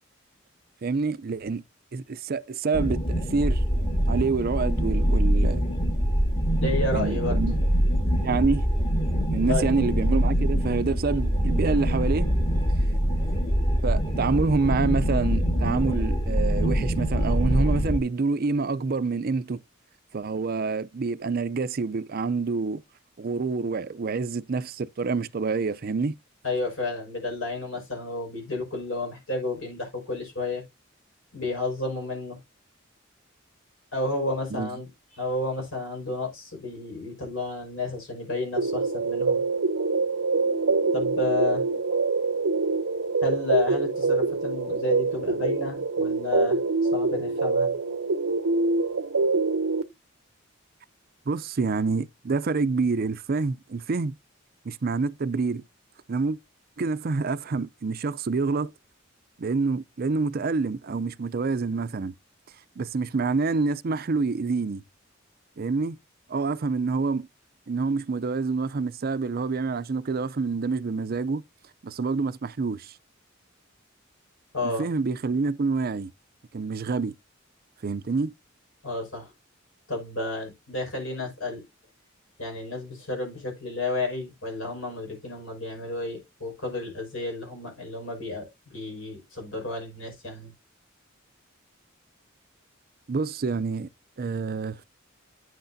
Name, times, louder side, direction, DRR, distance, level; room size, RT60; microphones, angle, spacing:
voice 1, 0.8-1.6 1.9-3.6 4.1-5.6 6.9-7.5 8.2-8.6 9.3-12.3 13.8-19.6 20.1-22.8 23.2-26.1 34.5-34.7 51.3-54.1 54.7-55.6 56.1-56.4 56.8-58.7 59.4-62.1 62.8-64.8 65.6-66.0 66.3-67.3 67.7-71.4 71.8-72.9 74.6-76.1 76.5-77.1 77.8-78.3 93.1-93.9 94.2-94.8, right 4 dB, 45° right, 0.5 m, -27 dB
sound 1, 2.7-18.0, equal, 30° left, 1.8 m, -24 dB
voice 2, 6.6-7.4 9.5-9.7 26.4-30.6 31.3-32.4 33.9-39.4 40.9-41.6 43.2-46.6 46.9-47.7 74.5-74.9 78.8-79.3 79.9-81.6 82.4-90.5, left 2 dB, 75° left, 5.4 m, -31 dB
sound 2, 38.6-49.8, right 3 dB, 85° right, 0.7 m, -25 dB
9.4 x 8.0 x 2.7 m
head